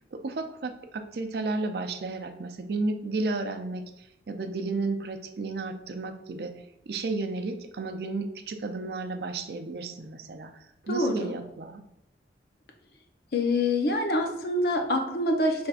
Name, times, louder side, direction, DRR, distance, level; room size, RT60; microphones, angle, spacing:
voice 1, 0.1-6.5 6.9-11.8, right 3 dB, 65° right, 6 dB, 0.5 m, -33 dB
voice 2, 10.9-11.3 13.3-15.7, left 1 dB, 60° left, 3 dB, 0.7 m, -26 dB
6.3 x 3.4 x 2.4 m, 0.83 s
head